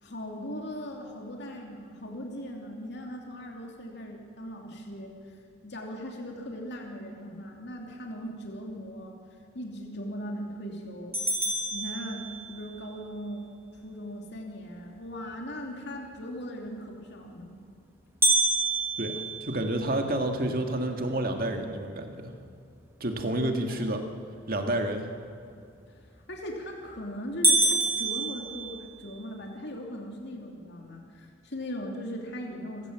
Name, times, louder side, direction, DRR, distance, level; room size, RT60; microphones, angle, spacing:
voice 1, 0.0-5.4 5.6-9.2 9.5-11.3 11.7-13.5 13.8-17.5 23.7-23.8 25.9-26.0 26.3-32.9, equal, 60° left, 1 dB, 2.9 m, -39 dB
sound 1, 11.1-12.7 18.2-20.4 20.9-21.0 21.5-21.6 22.2-22.6 26.2-26.6 27.0-27.1 27.4-29.2, right 2 dB, 10° right, 1.6 m, -27 dB
voice 2, 19.0-22.3 23.0-24.0 24.5-25.1, right 1 dB, 50° right, 4 dB, 2.0 m, -29 dB
26.5 x 15.5 x 7.6 m, 2.5 s
head